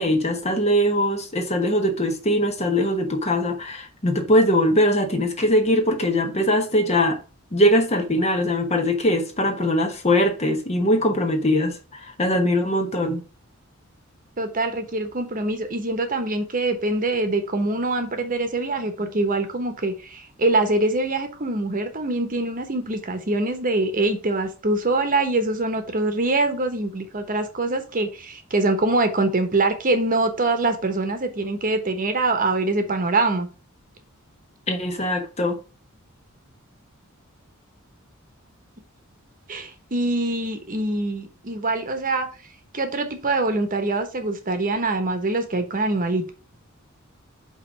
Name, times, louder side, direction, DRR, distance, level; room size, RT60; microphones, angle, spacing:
voice 1, 0.0-7.2 7.5-13.2 34.7-35.6, left 1 dB, 30° left, 1.1 m, -21 dB
voice 2, 14.4-33.5 39.5-42.3 42.7-46.3, right 2 dB, 40° right, 1.1 m, -24 dB
5.4 x 3.9 x 5.9 m
head